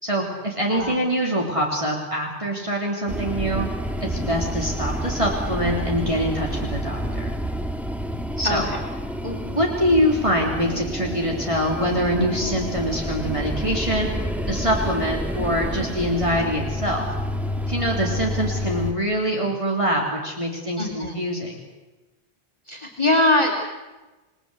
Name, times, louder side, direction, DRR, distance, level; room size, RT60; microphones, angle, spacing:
voice 1, 0.0-3.7 4.0-7.3 8.4-8.7 9.2-14.1 14.5-17.1 17.7-21.6, equal, 30° right, -1 dB, 3.4 m, -24 dB
voice 2, 0.7-1.0 8.4-8.6 20.8-21.2 22.7-23.5, left 1 dB, 25° left, 0 dB, 3.4 m, -21 dB
sound 1, 3.1-18.9, equal, ahead, 1.6 m, -29 dB
29.0 x 20.0 x 8.0 m, 1.2 s
omnidirectional pair, 1.1 m